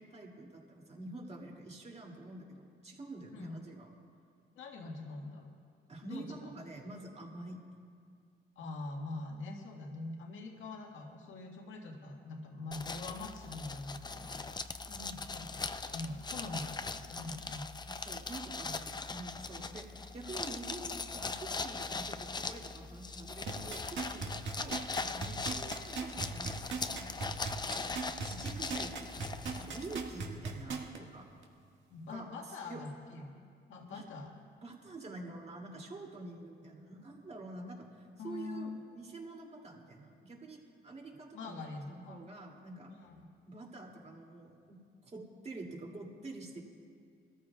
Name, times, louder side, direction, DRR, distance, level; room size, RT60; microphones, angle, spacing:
voice 1, 0.0-3.9 5.9-7.6 14.9-15.3 18.0-19.9 20.1-27.4 28.2-31.3 32.1-32.3 32.6-32.8 33.9-34.0 34.6-41.6 41.9-42.9 43.5-46.6, right 2 dB, 35° right, 0 dB, 2.7 m, -47 dB
voice 2, 4.6-5.5 6.0-6.6 8.6-14.9 15.3-17.6 19.6-19.7 24.5-24.6 31.9-34.3 38.2-38.8 41.3-42.2 42.9-43.2, left 2 dB, 80° left, 0 dB, 1.8 m, -44 dB
sound 1, 12.7-30.2, left 4 dB, 20° left, 0.6 m, -40 dB
sound 2, 23.5-31.0 31.4-31.5, right 5 dB, 70° right, 1.8 m, -38 dB
24.0 x 14.0 x 2.4 m, 2.2 s
cardioid pair, 90°, 20 cm